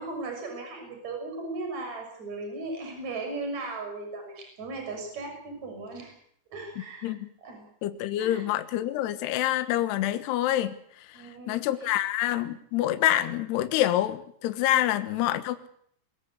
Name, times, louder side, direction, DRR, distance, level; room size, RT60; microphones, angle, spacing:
voice 1, 0.0-6.1 6.5-7.1 7.4-7.7 8.2-8.5 11.1-12.0, right 3 dB, 35° right, 3 dB, 7.2 m, -37 dB
voice 2, 7.8-10.7 11.5-15.7, left 13 dB, 70° left, 9 dB, 3.0 m, -26 dB
22.0 x 20.5 x 8.3 m, 0.66 s
omnidirectional pair, 5.6 m